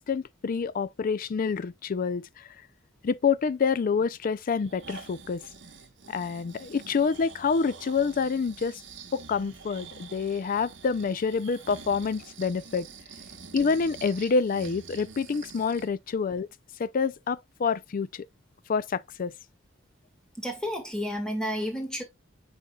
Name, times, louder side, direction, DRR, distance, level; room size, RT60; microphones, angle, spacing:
voice 1, 0.0-2.6 3.0-5.4 6.1-8.8 9.1-12.9 13.5-16.5 16.8-18.3 18.7-19.3, left 5 dB, 45° left, 0.4 m, -27 dB
Breathing, 4.5-15.9 16.4-16.5, right 5 dB, 65° right, 1.1 m, -47 dB
voice 2, 20.4-22.0, equal, 5° left, 1.8 m, -31 dB
8.4 x 5.3 x 2.3 m
head